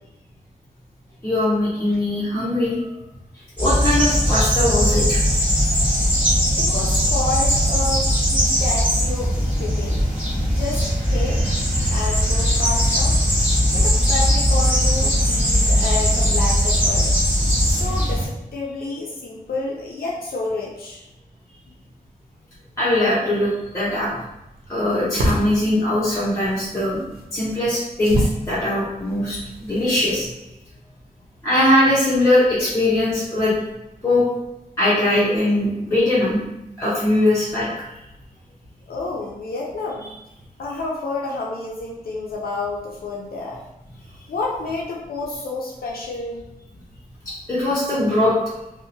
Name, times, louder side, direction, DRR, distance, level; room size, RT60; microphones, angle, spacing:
voice 1, 1.2-2.9 3.6-5.2 22.8-24.1 24.7-27.0 27.3-30.3 31.4-33.5 34.0-34.2 34.8-36.4 36.8-37.7 47.3-48.3, left 1 dB, 20° left, -10 dB, 0.6 m, -20 dB
sound 1, 3.6-18.3, equal, 10° right, 1.1 m, -19 dB
voice 2, 6.6-10.0 10.5-10.8 11.1-13.2 13.7-17.1 17.6-21.1 38.9-40.1 40.6-43.6 44.3-46.4, left 3 dB, 80° left, -3 dB, 0.4 m, -29 dB
sound 2, 23.8-30.2, equal, 80° right, 0.5 m, -29 dB
2.7 x 2.1 x 2.6 m, 0.92 s
wide cardioid pair, 100°, 15 cm